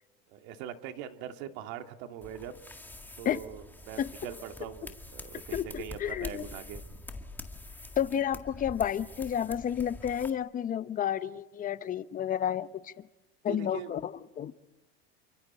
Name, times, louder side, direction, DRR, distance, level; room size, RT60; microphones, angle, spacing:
voice 1, 0.3-2.6 3.2-6.8 13.5-13.9, right 10 dB, 65° right, 6 dB, 2.2 m, -42 dB
sound 1, 2.2-10.3, left 2 dB, 5° left, 1.9 m, -45 dB
voice 2, 5.5-6.5 8.0-12.9 13.4-14.5, left 9 dB, 30° left, 14 dB, 0.9 m, -31 dB
29.0 x 24.5 x 4.3 m, 1.1 s
supercardioid pair, 120°, 29 cm